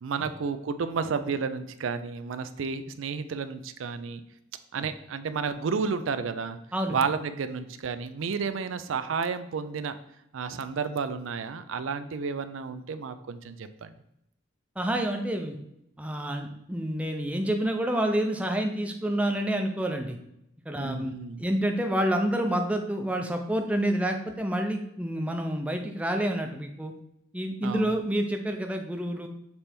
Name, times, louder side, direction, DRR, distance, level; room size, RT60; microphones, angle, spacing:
voice 1, 0.0-4.2 4.7-6.6 6.9-10.0 10.3-13.9 20.8-21.4 27.6-27.9, right 5 dB, 90° right, 11 dB, 0.5 m, -31 dB
voice 2, 14.8-15.6 16.0-20.2 20.7-21.1 21.4-26.9 27.3-29.3, right 1 dB, 5° right, 4 dB, 0.5 m, -28 dB
6.9 x 3.3 x 4.3 m, 0.80 s
head